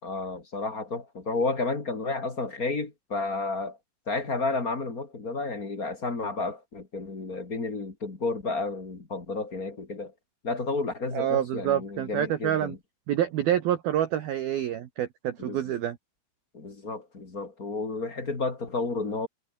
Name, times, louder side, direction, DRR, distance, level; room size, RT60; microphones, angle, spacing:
voice 1, 0.0-3.8 4.1-10.1 10.4-12.8 15.4-15.6 16.5-19.3, left 3 dB, 25° left, 2.4 m, -31 dB
voice 2, 11.1-12.8 13.1-16.0, right 11 dB, 65° right, 2.7 m, -27 dB
omnidirectional pair, 5.9 m